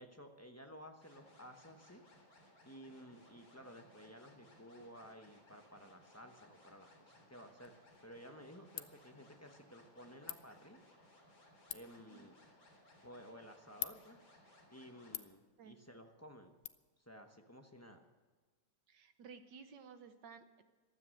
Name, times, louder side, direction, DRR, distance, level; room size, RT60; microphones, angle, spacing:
voice 1, 0.0-2.0 2.7-10.8 11.7-12.3 13.0-14.2 14.7-16.6 17.0-18.1, equal, 20° left, 4 dB, 0.4 m, -55 dB
sound 1, 1.0-15.2, left 1 dB, 45° left, 3.9 m, -64 dB
Ratchet pawl, 7.6-16.7, left 13 dB, 75° left, 1.4 m, -51 dB
voice 2, 18.9-20.6, right 6 dB, 65° right, 9 dB, 1.4 m, -55 dB
15.0 x 12.5 x 6.4 m, 1.3 s
omnidirectional pair, 2.2 m